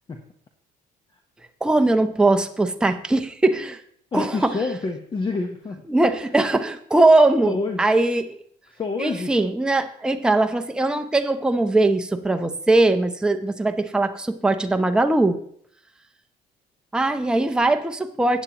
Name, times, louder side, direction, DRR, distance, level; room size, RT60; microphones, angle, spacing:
voice 1, 1.6-3.8 4.1-4.5 5.9-8.3 9.0-15.4 16.9-18.4, right 2 dB, 5° right, 6 dB, 0.6 m, -20 dB
voice 2, 4.1-5.8 7.4-7.8 8.7-9.3 10.8-10.9, left 3 dB, 30° left, 5 dB, 0.9 m, -28 dB
14.5 x 8.9 x 2.9 m, 0.65 s
cardioid pair, 110°, 17 cm